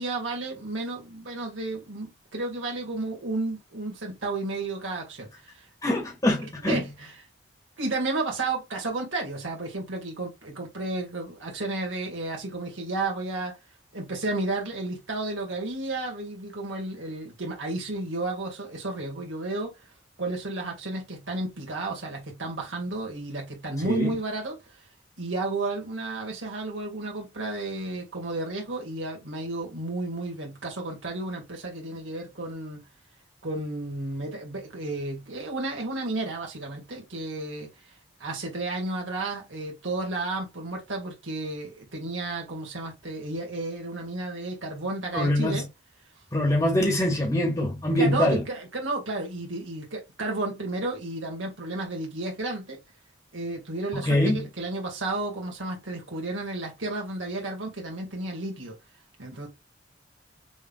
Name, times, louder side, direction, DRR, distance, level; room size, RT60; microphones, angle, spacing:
voice 1, 0.0-5.7 6.6-7.2 7.8-13.6 13.9-19.8 20.2-24.8 25.2-32.8 33.4-37.7 38.2-45.7 47.9-52.8 53.3-58.8 59.2-59.5, right 2 dB, 90° right, 1.9 m, -32 dB
voice 2, 5.8-6.8 23.8-24.1 45.1-45.6 46.3-48.4 54.0-54.4, left 1 dB, 20° left, 1.6 m, -24 dB
6.1 x 3.7 x 2.3 m
head